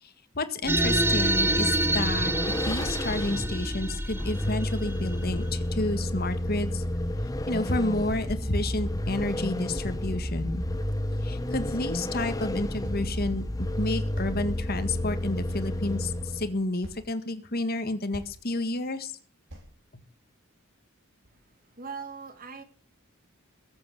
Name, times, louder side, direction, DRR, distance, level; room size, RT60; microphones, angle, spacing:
voice 1, 0.0-6.8 7.5-10.6 11.2-19.1, left 2 dB, 45° left, 10 dB, 1.7 m, -30 dB
Vehicle, 0.6-16.6, left 1 dB, 15° left, 1.0 m, -31 dB
sound 1, 0.7-5.5, right 2 dB, 10° right, 0.9 m, -28 dB
sound 2, 11.5-11.7 12.8-13.2 14.1-14.9 15.5-16.1 16.8-17.0 17.7-17.8 18.1-18.4 19.5-19.7, right 1 dB, 60° right, 4.2 m, -44 dB
voice 2, 21.2-22.6, right 5 dB, 40° right, 8 dB, 2.6 m, -41 dB
21.5 x 8.1 x 7.0 m, 0.42 s
head